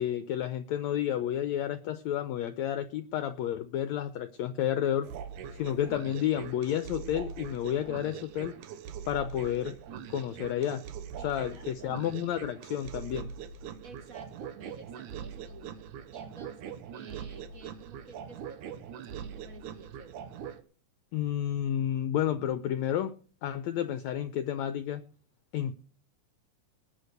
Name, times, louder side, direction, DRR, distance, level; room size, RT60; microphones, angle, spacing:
voice 1, 0.0-5.1 5.5-8.5 9.1-9.8 10.1-10.8 11.2-13.3 21.1-23.1 23.4-25.0 25.5-25.8, left 11 dB, 75° left, 12 dB, 1.8 m, -31 dB
sound 1, 5.0-20.6, right 8 dB, 75° right, 2.4 m, -42 dB
voice 2, 11.2-12.0 13.8-20.2, right 4 dB, 35° right, 7 dB, 1.6 m, -52 dB
19.5 x 6.5 x 6.6 m, 0.41 s
omnidirectional pair, 3.7 m